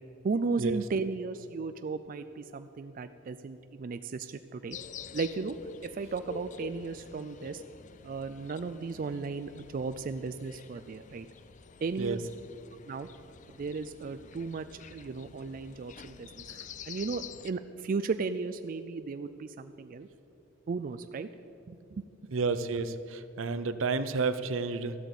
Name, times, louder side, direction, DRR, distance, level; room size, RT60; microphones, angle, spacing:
voice 1, 0.2-4.8 5.1-5.6 5.8-7.6 8.0-11.3 11.8-12.2 12.9-13.1 13.6-20.1 20.7-21.3 21.7-22.1, right 4 dB, 45° right, 11 dB, 0.3 m, -35 dB
sound 1, 4.7-17.5, left 6 dB, 40° left, 0.4 m, -48 dB
voice 2, 22.3-25.0, right 4 dB, 80° right, 12 dB, 0.7 m, -31 dB
13.5 x 8.1 x 8.0 m, 2.8 s
head